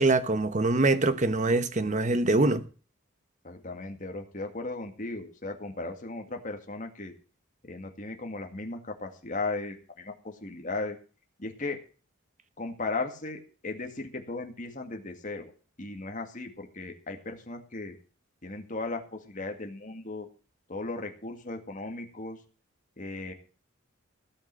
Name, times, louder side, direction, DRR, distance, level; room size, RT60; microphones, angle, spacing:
voice 1, 0.0-2.6, right 2 dB, 35° right, 1.0 m, -24 dB
voice 2, 3.4-7.1 7.6-11.0 11.4-11.8 12.6-15.5 15.8-18.0 18.4-20.3 20.7-22.4 23.0-23.3, left 3 dB, 40° left, 2.1 m, -36 dB
16.5 x 5.9 x 7.6 m
head